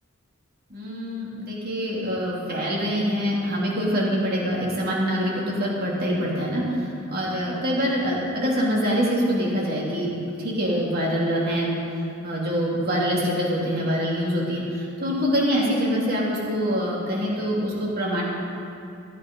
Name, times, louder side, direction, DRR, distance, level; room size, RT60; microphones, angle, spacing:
voice 1, 0.7-6.6 7.1-11.7 12.2-18.2, equal, 45° right, -5 dB, 2.9 m, -25 dB
14.5 x 9.3 x 5.4 m, 2.6 s
head